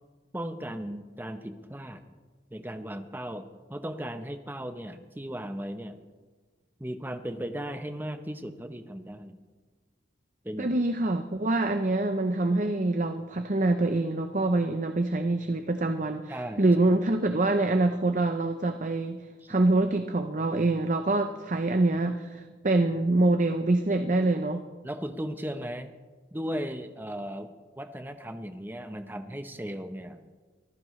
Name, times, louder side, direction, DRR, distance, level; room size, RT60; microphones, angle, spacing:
voice 1, 0.3-2.1 2.5-6.0 6.8-9.4 10.4-10.7 16.3-16.7 19.4-19.5 24.8-25.9 26.3-30.2, equal, 10° right, 8 dB, 0.9 m, -36 dB
voice 2, 10.6-19.2 19.5-24.6, right 2 dB, 45° right, 7 dB, 0.7 m, -25 dB
24.0 x 15.0 x 3.2 m, 1.4 s
head